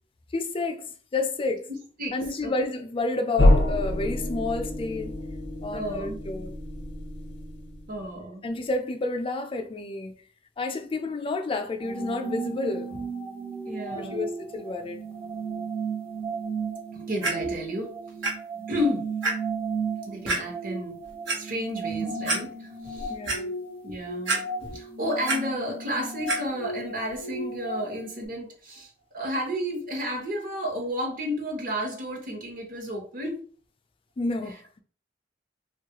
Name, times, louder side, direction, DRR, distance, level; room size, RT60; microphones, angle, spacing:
voice 1, 0.3-0.9 1.1-1.7 2.1-5.2 5.6-6.5 8.4-10.2 10.6-13.0 14.0-15.0 23.1-23.5 34.2-34.8, left 3 dB, 30° left, 0.3 m, -30 dB
sound 1, 3.4-8.1, left 1 dB, 70° left, 0.6 m, -26 dB
voice 2, 5.7-6.2 7.9-8.4 13.6-14.3 16.9-17.9 18.7-19.1 20.1-21.0 21.3-23.1 23.8-24.4 24.7-33.4, equal, 50° right, 0.9 m, -32 dB
sound 2, 11.8-28.3, right 4 dB, 15° right, 0.6 m, -35 dB
Clock, 17.2-17.3 18.2-18.3 18.8-18.9 19.2-19.3 20.3-20.4 21.0-21.4 21.9-22.0 22.3-22.4 22.8-23.4 24.3-24.8 25.0-25.4 26.3-26.4 27.1-27.2, right 3 dB, 80° right, 0.9 m, -27 dB
3.1 x 2.3 x 2.8 m
head